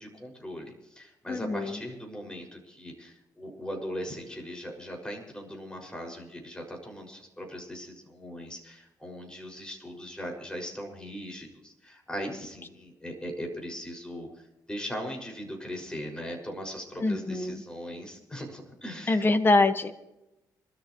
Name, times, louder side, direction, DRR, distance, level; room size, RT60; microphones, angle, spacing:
voice 1, 0.0-19.2, equal, 10° left, 2 dB, 6.3 m, -39 dB
voice 2, 1.3-1.8 17.0-17.6 19.1-19.9, left 2 dB, 30° left, 8 dB, 1.7 m, -24 dB
26.5 x 13.5 x 3.2 m, 0.92 s
cardioid pair, 95°, 7 cm